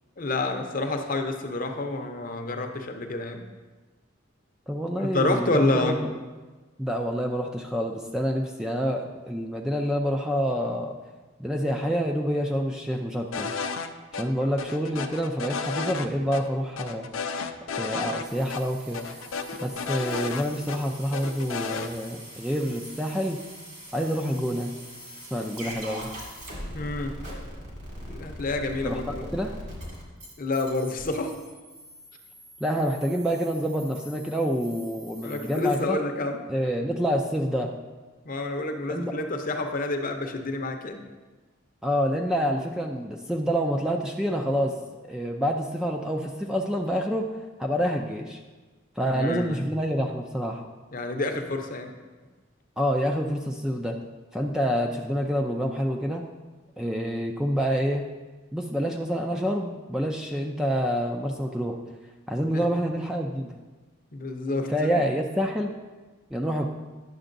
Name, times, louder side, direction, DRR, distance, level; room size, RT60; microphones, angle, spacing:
voice 1, 0.2-3.4 5.0-6.0 26.7-27.2 28.1-29.3 30.4-31.4 35.2-36.4 38.3-41.0 49.0-49.6 50.9-51.9 62.5-62.6 64.1-64.9, left 2 dB, 45° left, 4 dB, 0.6 m, -28 dB
voice 2, 4.7-6.1 6.8-10.9 11.4-13.5 14.1-17.1 17.7-19.2 19.6-23.4 23.9-24.7 25.3-26.1 28.8-29.5 32.6-36.0 36.5-37.7 38.9-39.1 41.8-44.8 45.0-47.3 47.6-48.4 49.0-50.6 52.8-54.0 54.3-56.2 56.8-58.0 58.5-61.8 62.3-63.5 64.7-65.7 66.3-66.7, equal, 5° right, 1 dB, 0.3 m, -27 dB
sound 1, 13.3-13.9 14.1-14.2 14.6-16.1 16.3-16.4 16.8-18.2 18.5-18.6 18.9-20.8 21.1-21.9, left 5 dB, 85° left, 0.5 m, -32 dB
sound 2, 18.2-35.8, equal, 55° right, 2.0 m, -42 dB
10.0 x 6.6 x 2.6 m, 1.3 s
head